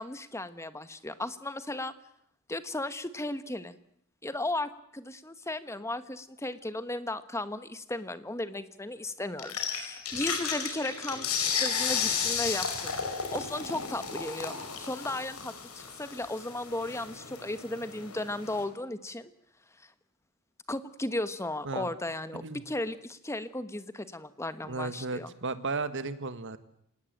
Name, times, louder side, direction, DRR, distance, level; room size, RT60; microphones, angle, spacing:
voice 1, 0.0-2.0 2.5-3.8 4.2-11.3 11.6-13.0 13.3-19.3 19.8-19.9 20.7-25.3, left 2 dB, 15° left, 12 dB, 1.2 m, -35 dB
sound 1, 9.4-18.6, left 6 dB, 80° left, 5.1 m, -33 dB
voice 2, 24.7-26.6, right 3 dB, 55° right, 12 dB, 1.7 m, -34 dB
26.0 x 19.0 x 9.1 m, 0.70 s
head